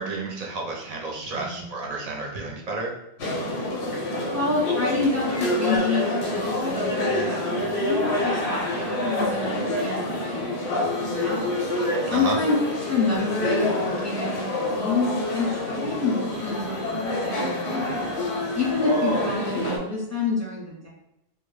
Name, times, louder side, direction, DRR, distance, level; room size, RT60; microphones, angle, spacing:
voice 1, 0.0-2.9 12.1-12.4, right 3 dB, 50° right, -1 dB, 0.5 m, -31 dB
voice 2, 1.3-1.7 4.3-11.5 12.1-12.6 12.9-18.1 18.5-20.9, left 3 dB, 20° left, -6 dB, 0.6 m, -28 dB
sound 1, 3.2-19.8, left 1 dB, 85° left, 0.9 m, -27 dB
2.2 x 2.1 x 3.2 m, 0.84 s
omnidirectional pair, 1.1 m